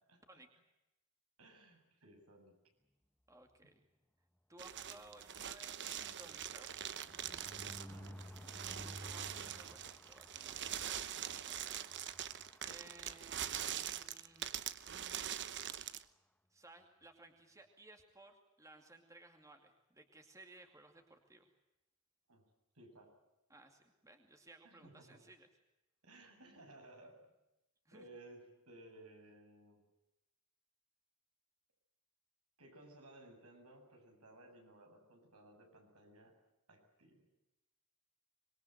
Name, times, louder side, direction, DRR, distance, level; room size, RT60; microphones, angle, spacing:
voice 1, 0.1-0.4 1.4-2.5 3.6-3.7 7.9-8.4 22.3-22.4 22.7-23.1 24.6-25.2 26.0-27.3 27.9-29.8 32.6-36.3 36.7-37.3, right 1 dB, 80° right, 3 dB, 7.9 m, -59 dB
voice 2, 3.3-3.9 4.5-6.9 8.8-14.5 14.9-15.3 16.5-21.5 23.5-25.5 27.9-28.1, right 2 dB, 15° right, 5 dB, 2.4 m, -60 dB
sound 1, 4.6-16.0, right 10 dB, 55° right, 1.0 m, -43 dB
sound 2, 4.7-13.5 13.9-14.1 14.4-14.5 14.7-15.0, equal, 5° left, 0.9 m, -55 dB
25.5 x 22.5 x 8.0 m, 0.96 s
head